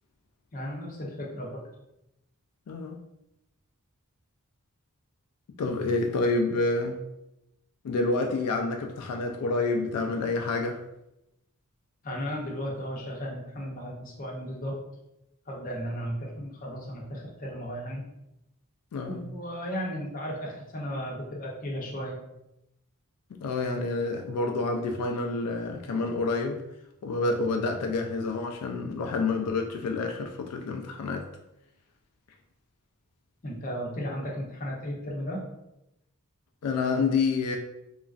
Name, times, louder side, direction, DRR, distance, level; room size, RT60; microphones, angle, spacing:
voice 1, 0.5-1.6 12.0-14.8 15.5-18.0 19.1-22.2 33.4-35.4, equal, 40° left, 0.6 m, -35 dB
voice 2, 2.7-3.0 5.6-7.0 7.8-10.8 18.9-19.2 23.3-26.6 27.0-31.3 36.6-37.6, left 3 dB, 85° left, 0.3 m, -28 dB
2.9 x 2.3 x 2.4 m
head